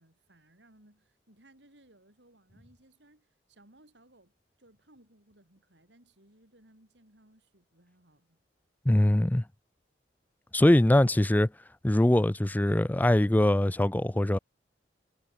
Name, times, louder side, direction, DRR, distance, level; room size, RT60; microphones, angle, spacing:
voice 1, 0.0-8.4, right 1 dB, 75° right, 7.4 m, -61 dB
voice 2, 8.9-9.4 10.5-11.5 11.8-14.4, left 1 dB, 10° left, 0.4 m, -22 dB
head